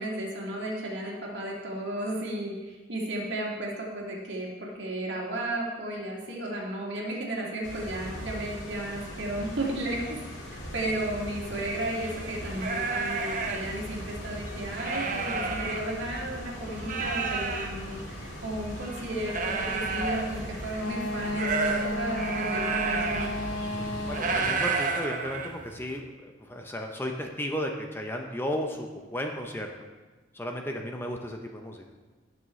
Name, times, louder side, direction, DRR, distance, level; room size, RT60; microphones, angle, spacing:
voice 1, 0.0-10.2 10.5-23.3, right 1 dB, 70° right, -2 dB, 2.1 m, -34 dB
sound 1, 7.6-24.5, equal, 75° left, 2.5 m, -40 dB
sound 2, 11.6-16.4 16.7-25.9, right 4 dB, 40° right, 0.8 m, -32 dB
Wind instrument woodwind instrument, 20.8-24.5, left 1 dB, 90° left, 0.7 m, -33 dB
voice 2, 23.8-29.7 30.3-31.8, equal, 10° left, 2 dB, 0.6 m, -34 dB
18.0 x 6.3 x 3.1 m, 1.3 s
head